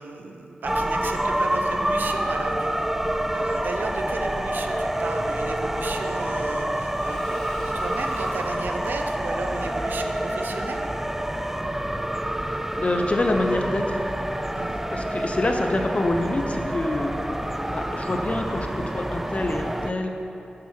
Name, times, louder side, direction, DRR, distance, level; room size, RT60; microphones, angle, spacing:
voice 1, 0.0-2.9 3.3-10.9 14.5-14.8, right 4 dB, 85° right, 5 dB, 0.5 m, -34 dB
sound 1, 0.6-19.9, right 1 dB, 10° right, 0.4 m, -27 dB
Engine / Mechanisms / Drill, 5.2-11.9, left 1 dB, 25° left, 1.6 m, -45 dB
voice 2, 12.7-14.0 14.9-17.1 17.7-20.1, left 2 dB, 45° left, 4 dB, 0.7 m, -26 dB
7.5 x 5.6 x 4.4 m, 2.9 s
cardioid pair, 45°, 3 cm